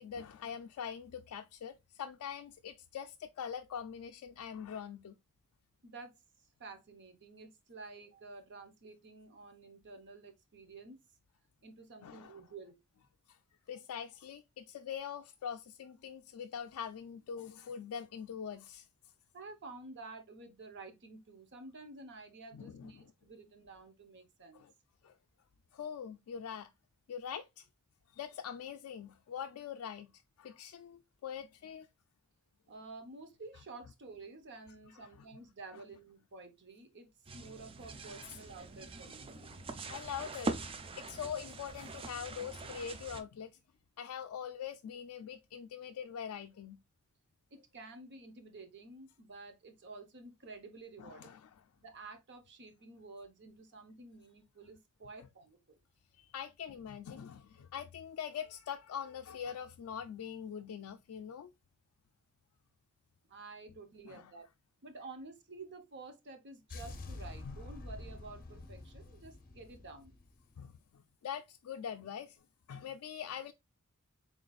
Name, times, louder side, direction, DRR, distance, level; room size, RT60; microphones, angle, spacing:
voice 1, 0.0-5.1 12.0-12.4 13.3-13.4 13.7-18.9 22.5-23.1 24.5-24.7 25.0-25.2 25.7-26.7 27.1-27.7 28.1-31.9 35.2-35.3 35.7-35.8 38.2-38.4 39.9-43.6 44.0-46.8 51.0-51.6 55.2-55.3 56.1-61.5 64.0-64.3 67.4-67.5 70.6-72.4 72.7-73.5, left 8 dB, 70° left, 0.3 m, -43 dB
voice 2, 5.8-6.1 6.6-11.0 11.6-12.8 19.3-24.6 32.7-39.3 47.5-51.3 51.8-55.8 63.3-64.4 64.8-70.2, right 3 dB, 55° right, 0.8 m, -51 dB
sound 1, 37.3-43.2, right 3 dB, 25° right, 0.4 m, -43 dB
sound 2, 66.7-70.8, left 2 dB, 40° left, 0.7 m, -47 dB
3.9 x 3.7 x 2.3 m
head